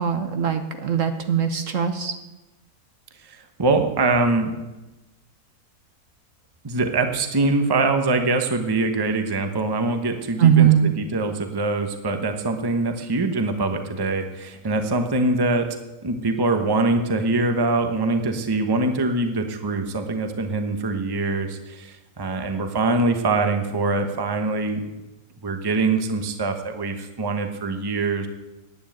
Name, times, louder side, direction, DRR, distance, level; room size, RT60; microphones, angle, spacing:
voice 1, 0.0-2.1 10.4-10.9, right 9 dB, 60° right, 7 dB, 1.2 m, -20 dB
voice 2, 3.2-4.6 6.6-15.8 16.0-24.8 25.4-28.3, right 3 dB, 20° right, 6 dB, 0.9 m, -23 dB
10.5 x 9.1 x 8.8 m, 1.1 s
omnidirectional pair, 1.7 m